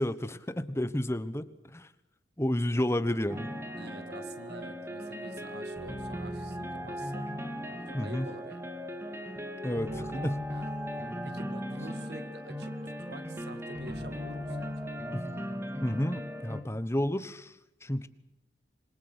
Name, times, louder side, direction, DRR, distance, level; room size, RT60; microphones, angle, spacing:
voice 1, 0.0-1.4 1.7-1.9 2.4-3.5 7.9-8.3 9.6-10.4 15.1-15.2 15.8-17.5 17.8-18.1, left 1 dB, 15° left, 12 dB, 1.1 m, -30 dB
sound 1, 3.3-16.6, equal, 15° right, 2.5 m, -38 dB
voice 2, 3.8-7.3 7.9-8.8 10.5-10.7 11.2-14.9, right 2 dB, 65° right, 10 dB, 2.2 m, -47 dB
27.0 x 22.0 x 8.1 m, 0.88 s
head